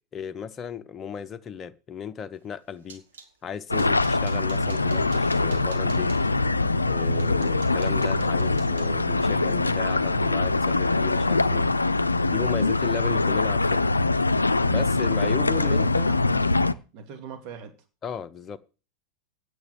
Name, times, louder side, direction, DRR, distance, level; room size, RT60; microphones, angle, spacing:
voice 1, 0.1-3.0 3.4-6.1 6.9-11.7 12.2-13.9 14.7-16.1 18.0-18.6, left 8 dB, 25° left, 0.9 m, -35 dB
man hitting rocks, 2.4-3.3 3.8-6.2 6.8-6.9 7.2-11.4 11.7-12.2 12.4-12.6 13.0-13.2, right 5 dB, 70° right, 2.0 m, -50 dB
sound 1, 3.7-16.7, left 3 dB, 90° left, 0.5 m, -23 dB
sound 2, 4.5-10.6, right 4 dB, 30° right, 3.5 m, -44 dB
voice 2, 15.3-16.6 16.9-17.7, right 7 dB, 45° right, 2.4 m, -42 dB
9.3 x 7.9 x 9.3 m
figure-of-eight pair, 90°, 0 cm